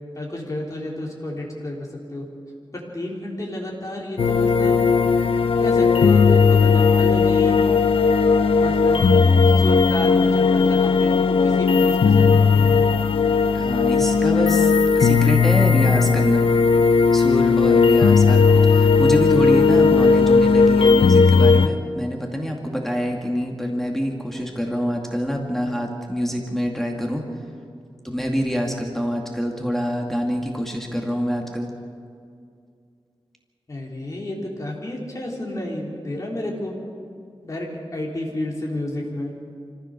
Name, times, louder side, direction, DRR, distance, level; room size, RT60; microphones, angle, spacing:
voice 1, 0.1-2.3 2.7-4.8 5.6-7.6 8.5-9.2 9.5-12.9 33.7-36.7 37.4-39.3, left 1 dB, 35° left, -2 dB, 3.7 m, -31 dB
sound 1, 4.2-21.7, left 5 dB, 75° left, 0.7 m, -16 dB
voice 2, 13.5-16.5 17.1-27.2 28.0-31.7, equal, 5° left, 1 dB, 2.3 m, -25 dB
25.5 x 15.5 x 6.7 m, 2.3 s
wide cardioid pair, 110°, 9 cm